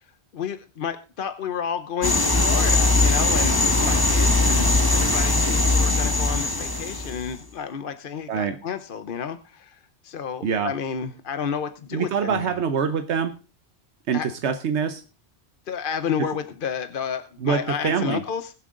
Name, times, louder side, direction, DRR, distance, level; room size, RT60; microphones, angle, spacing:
voice 1, 0.3-12.6 14.1-14.3 15.7-18.5, left 7 dB, 55° left, 9 dB, 0.9 m, -31 dB
sound 1, 2.0-7.3, left 2 dB, 20° left, 1.4 m, -20 dB
voice 2, 10.4-10.7 11.9-13.3 14.1-15.0 17.4-18.2, right 6 dB, 80° right, 9 dB, 1.1 m, -25 dB
21.0 x 7.5 x 3.7 m, 0.35 s
omnidirectional pair, 1.1 m